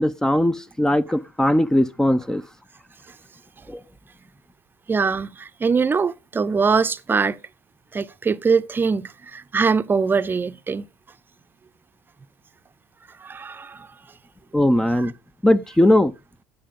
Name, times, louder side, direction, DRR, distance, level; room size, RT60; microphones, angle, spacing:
voice 1, 0.0-2.4 3.7-3.8 14.5-15.1 15.4-16.1, left 1 dB, 10° left, 0.7 m, -19 dB
voice 2, 4.9-7.4 7.9-10.9 13.2-13.9 15.0-15.1, right 5 dB, 25° right, 0.7 m, -22 dB
10.0 x 7.0 x 5.2 m
supercardioid pair, 75°, 8 cm